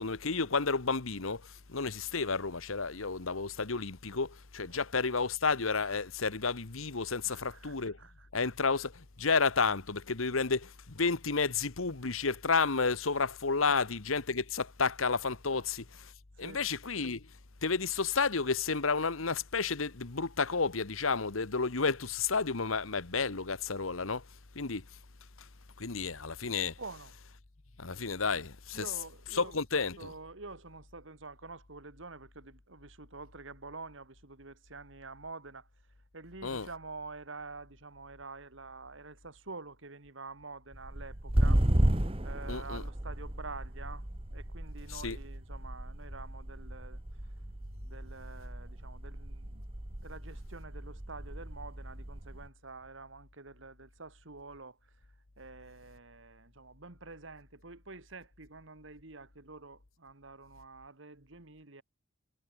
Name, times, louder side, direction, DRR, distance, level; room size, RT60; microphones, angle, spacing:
voice 1, 0.0-8.0 8.3-16.1 16.4-17.3 17.6-24.2 24.5-24.8 25.4-25.5 25.8-26.8 27.8-28.8 29.3-30.1 36.4-36.7 42.5-42.8 44.9-45.2, left 4 dB, 85° left, 1.4 m, -31 dB
voice 2, 7.2-8.3 13.7-13.8 15.5-15.6 16.4-16.7 26.8-27.2 28.7-35.7 36.1-41.6 42.2-47.3 47.8-54.9 55.4-61.8, right 3 dB, 70° right, 2.0 m, -48 dB
sound 1, 40.7-52.5, right 1 dB, 25° right, 1.4 m, -34 dB
head